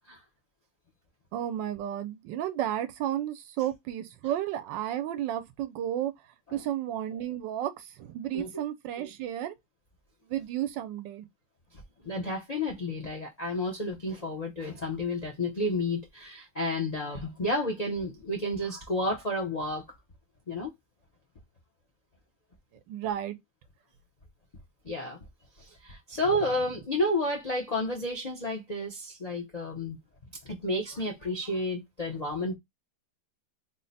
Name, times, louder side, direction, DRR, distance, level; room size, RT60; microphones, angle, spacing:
voice 1, 1.3-6.1 6.5-9.5 10.3-11.3 22.9-23.4, right 11 dB, 85° right, 1.4 m, -32 dB
voice 2, 12.0-19.8 20.5-20.7 24.8-25.2 25.6-30.0 30.4-32.5, left 1 dB, 60° left, 0.4 m, -31 dB
3.7 x 2.1 x 3.9 m
omnidirectional pair, 2.0 m